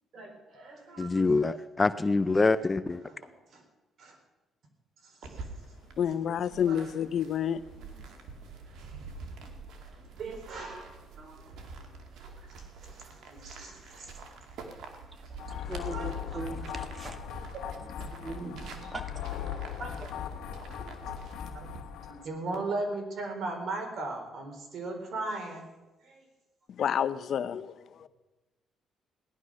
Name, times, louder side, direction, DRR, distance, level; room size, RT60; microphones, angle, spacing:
voice 1, 0.1-1.5 3.0-3.2 3.5-3.6 4.0-4.2 5.0-5.2 6.7-6.9 8.9-9.0 9.8-11.7 12.2-14.1 15.3-15.4 15.9-16.1 16.3-16.5 17.5-17.7 18.3-18.9 19.8-20.2 20.5-20.9 21.5-25.7 26.0-26.2, right 2 dB, 60° right, 3 dB, 4.3 m, -39 dB
voice 2, 1.0-3.0, left 3 dB, 20° left, 14 dB, 0.5 m, -25 dB
sound 1, 5.2-21.8, right 4 dB, 75° right, 2.3 m, -47 dB
voice 3, 6.0-7.6 26.7-28.1, left 8 dB, 60° left, 14 dB, 0.7 m, -29 dB
sound 2, 15.4-22.2, left 9 dB, 80° left, 1.6 m, -39 dB
voice 4, 15.5-17.5 17.8-18.5 18.9-19.4, right 3 dB, 30° right, 8 dB, 1.7 m, -41 dB
17.5 x 11.5 x 6.4 m, 1.1 s
cardioid pair, 100°, 0 cm